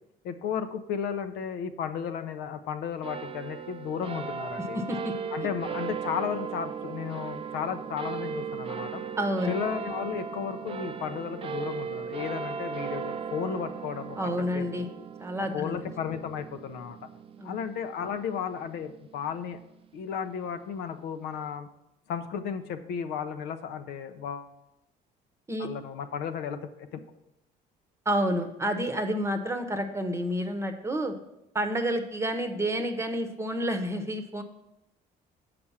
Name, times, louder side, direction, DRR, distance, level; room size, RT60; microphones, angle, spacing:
voice 1, 0.2-4.8 5.3-9.0 9.5-14.9 15.4-17.0 17.4-19.6 19.9-21.7 22.1-24.5 25.6-27.0, left 7 dB, 80° left, 8 dB, 0.7 m, -34 dB
sound 1, 3.0-19.7, right 6 dB, 35° right, 0.5 m, -37 dB
voice 2, 4.7-5.1 9.2-9.6 14.2-14.9 15.2-15.7 17.4-17.6 25.5-25.7 28.1-31.1 31.5-34.4, equal, 15° right, 7 dB, 0.9 m, -29 dB
6.9 x 5.0 x 7.1 m, 0.88 s
cardioid pair, 110°, 17 cm